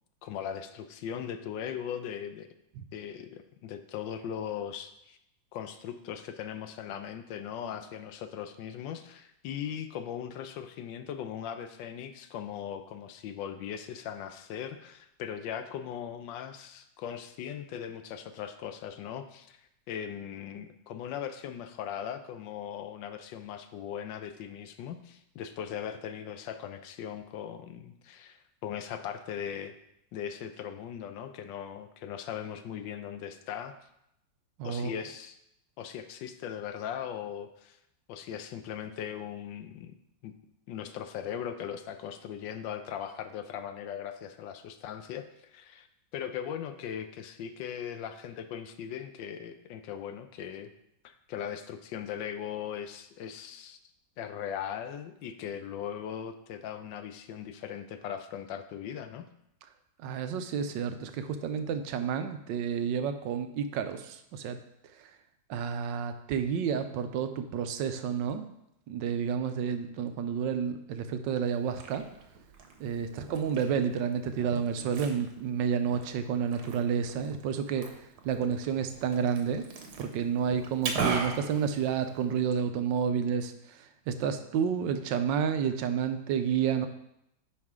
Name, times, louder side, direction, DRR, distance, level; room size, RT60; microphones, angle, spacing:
voice 1, 0.2-2.5 2.9-5.2 5.5-19.6 19.9-29.7 30.1-33.7 34.6-35.4 35.8-37.8 38.1-39.9 40.2-40.3 40.7-45.9 46.1-50.7 51.0-53.8 54.2-59.3, left 9 dB, 80° left, 9 dB, 1.3 m, -39 dB
voice 2, 34.6-34.9 60.0-64.6 65.5-68.5 68.9-72.0 72.8-77.9 78.2-79.6 80.0-83.5 84.1-86.9, right 7 dB, 80° right, 9 dB, 1.3 m, -30 dB
Liquid, 71.5-82.5, right 4 dB, 60° right, 1.4 m, -39 dB
9.8 x 4.8 x 3.6 m, 0.80 s
omnidirectional pair, 2.0 m